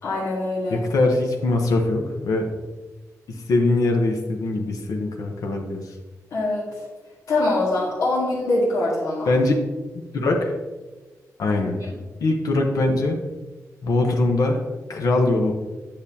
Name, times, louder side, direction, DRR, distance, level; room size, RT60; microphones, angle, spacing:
voice 1, 0.0-0.8 6.3-6.7 7.3-9.3, left 2 dB, 65° left, -8 dB, 2.0 m, -23 dB
voice 2, 0.7-2.4 3.3-5.8 9.3-9.6 10.1-10.6 11.4-11.8 12.2-13.2 13.8-14.6 14.9-15.5, left 2 dB, 80° left, 3 dB, 1.0 m, -22 dB
8.9 x 6.7 x 2.8 m, 1.3 s
wide cardioid pair, 165°, 6 cm